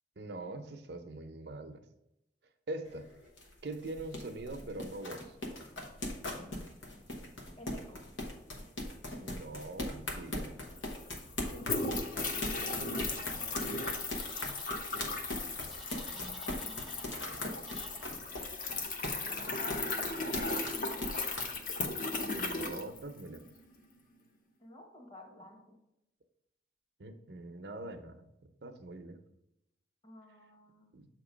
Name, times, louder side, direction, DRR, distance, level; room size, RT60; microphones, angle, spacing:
voice 1, 0.2-1.8 2.7-3.1 3.6-5.4 9.2-10.5 22.2-23.4 27.0-28.3 28.6-29.2 30.9-31.1, right 2 dB, 60° right, 7 dB, 0.6 m, -43 dB
sound 1, 2.9-21.9, left 1 dB, 90° left, 1.1 m, -40 dB
voice 2, 7.6-8.0 11.5-13.6 16.1-17.3 19.1-21.1 24.6-25.8 30.0-30.9, left 1 dB, 25° left, 1 dB, 1.1 m, -52 dB
sound 2, 10.4-10.5 10.7-23.5, left 3 dB, 45° left, 0.7 m, -37 dB
sound 3, 14.1-14.7 15.6-17.1 17.7-18.1, right 1 dB, ahead, 0.4 m, -54 dB
7.6 x 2.9 x 5.0 m, 0.86 s
head